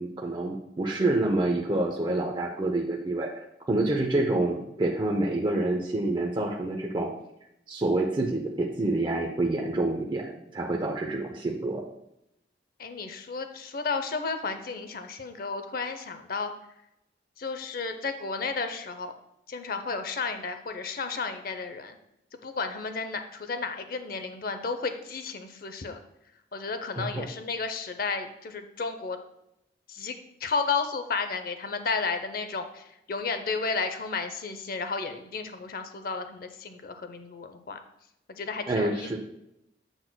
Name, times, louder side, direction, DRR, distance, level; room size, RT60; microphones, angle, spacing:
voice 1, 0.0-7.1 7.7-11.8 27.0-27.2 38.7-39.2, right 2 dB, 25° right, 0 dB, 0.6 m, -27 dB
voice 2, 12.8-16.5 17.4-19.1 19.5-21.9 22.4-26.0 26.5-29.2 29.9-30.2 30.4-37.8 38.4-39.2, left 4 dB, 50° left, 8 dB, 0.6 m, -32 dB
7.9 x 7.4 x 2.2 m, 0.82 s
head